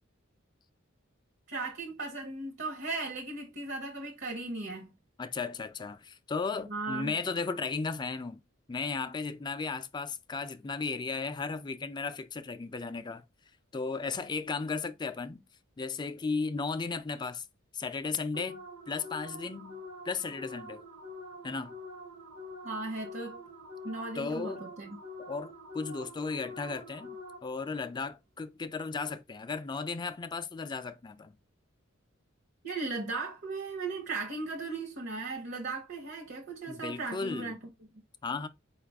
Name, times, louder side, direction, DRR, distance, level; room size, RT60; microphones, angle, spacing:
voice 1, 1.5-4.9 6.7-7.2 22.6-23.4 23.8-25.0 32.6-37.6, right 3 dB, 60° right, 0.8 m, -37 dB
voice 2, 5.2-8.4 8.7-13.2 13.7-15.4 15.8-17.4 17.7-19.8 20.0-20.8 21.4-21.7 24.1-24.7 25.3-27.2 27.4-31.3 36.7-37.6 38.2-38.5, left 4 dB, 20° left, 0.3 m, -35 dB
sound 1, 18.3-27.7, left 1 dB, 80° right, 1.1 m, -46 dB
4.7 x 2.4 x 3.4 m
head